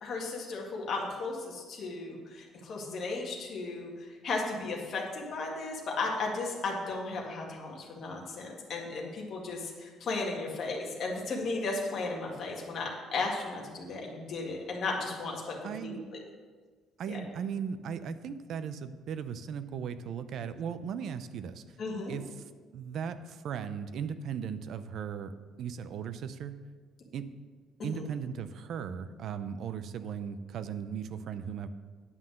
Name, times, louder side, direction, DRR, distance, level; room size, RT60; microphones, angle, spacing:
voice 1, 0.0-15.6 15.8-15.9 17.1-17.2 21.8-22.1 27.9-28.1, left 3 dB, 40° left, -2 dB, 1.9 m, -35 dB
voice 2, 15.6-16.0 17.0-21.8 22.1-22.3 22.7-25.3 25.6-26.6 27.1-27.3 27.8-31.7, right 7 dB, 50° right, 12 dB, 0.5 m, -37 dB
9.6 x 5.7 x 6.4 m, 1.5 s
cardioid pair, 170°, 0 cm